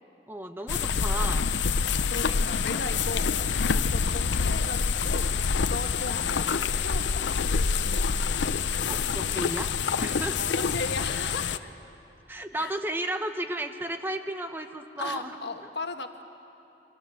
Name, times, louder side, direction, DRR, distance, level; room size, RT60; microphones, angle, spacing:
voice 1, 0.3-1.5 2.2-2.4 2.7-2.8 8.9-9.7 10.0-10.4 12.3-15.3 15.6-15.7, right 1 dB, 10° right, 7 dB, 0.9 m, -33 dB
sound 1, 0.7-11.6, left 5 dB, 85° left, 0.7 m, -26 dB
voice 2, 2.1-8.4 10.4-11.7 12.5-12.8 15.0-16.2, left 3 dB, 70° left, 6 dB, 1.5 m, -37 dB
28.5 x 23.5 x 7.0 m, 2.8 s
head